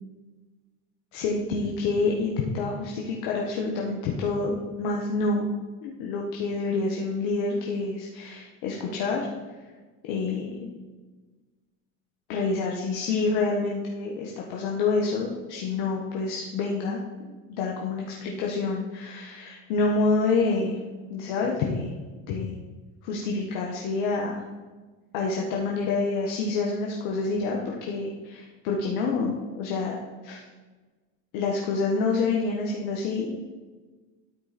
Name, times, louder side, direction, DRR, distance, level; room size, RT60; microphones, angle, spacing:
voice 1, 1.1-5.5 5.8-9.3 10.1-10.5 12.3-17.0 17.5-20.8 21.1-21.9 22.3-22.6 23.0-24.4 25.1-30.4 31.3-33.5, left 3 dB, 75° left, -1 dB, 1.3 m, -27 dB
12.5 x 4.9 x 4.1 m, 1.3 s
supercardioid pair, 90°, 38 cm